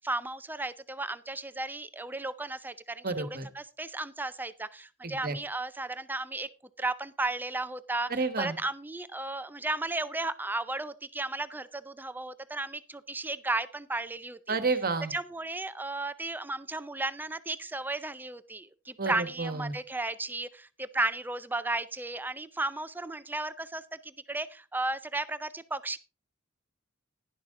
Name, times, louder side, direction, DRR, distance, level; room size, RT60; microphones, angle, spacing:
voice 1, 0.0-3.3 3.5-6.5 6.8-14.6 15.1-26.0, right 2 dB, 10° right, 13 dB, 0.5 m, -34 dB
voice 2, 3.0-3.5 5.0-5.3 8.1-8.6 14.5-15.1 19.0-19.7, right 3 dB, 45° right, 10 dB, 1.4 m, -30 dB
11.0 x 10.5 x 3.7 m, 0.31 s
head